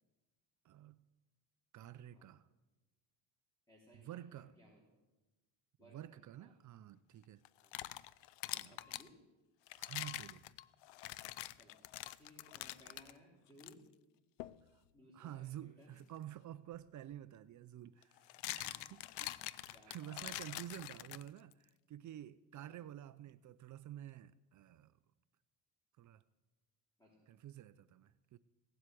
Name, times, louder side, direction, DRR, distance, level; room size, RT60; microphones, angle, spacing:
voice 1, 0.6-1.0 1.7-2.4 4.0-4.5 5.9-7.4 8.5-8.7 9.8-10.5 14.7-14.8 15.1-24.9 26.0-26.2 27.3-28.4, right 12 dB, 45° right, 0.5 m, -50 dB
voice 2, 3.7-4.8 5.8-6.5 7.6-7.8 8.5-9.2 11.5-11.8 12.2-13.8 14.9-16.0 18.4-18.8 19.7-20.5 22.5-22.9 27.0-27.3, equal, 10° left, 3.4 m, -63 dB
sound 1, 7.4-9.1 9.7-13.1 13.6-13.7 14.4-14.6 16.7-16.8 18.0-21.5, left 17 dB, 80° left, 0.6 m, -45 dB
17.0 x 7.9 x 9.1 m
cardioid pair, 135°, 43 cm